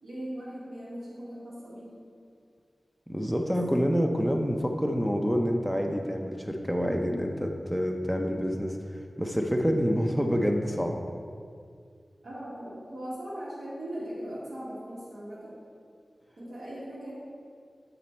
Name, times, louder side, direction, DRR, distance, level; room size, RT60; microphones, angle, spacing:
voice 1, 0.0-2.0 3.4-3.6 10.0-10.3 12.2-15.6 16.4-17.1, equal, 80° right, -9 dB, 1.6 m, -39 dB
voice 2, 3.1-8.8 9.2-11.0, equal, ahead, 2 dB, 0.6 m, -27 dB
9.0 x 4.1 x 4.4 m, 2.2 s
wide cardioid pair, 55°, 0 cm